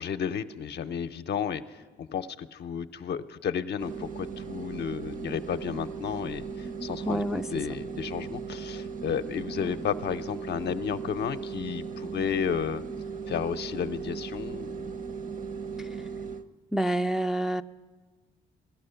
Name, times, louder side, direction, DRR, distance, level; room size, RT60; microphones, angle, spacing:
voice 1, 0.0-12.8 13.3-14.9, left 8 dB, 60° left, 0.6 m, -32 dB
sound 1, 3.8-16.4, right 5 dB, 40° right, 0.8 m, -37 dB
voice 2, 7.1-7.4 9.6-9.7 16.7-17.6, right 1 dB, ahead, 0.4 m, -27 dB
17.5 x 12.5 x 6.8 m
cardioid pair, 90°, 20 cm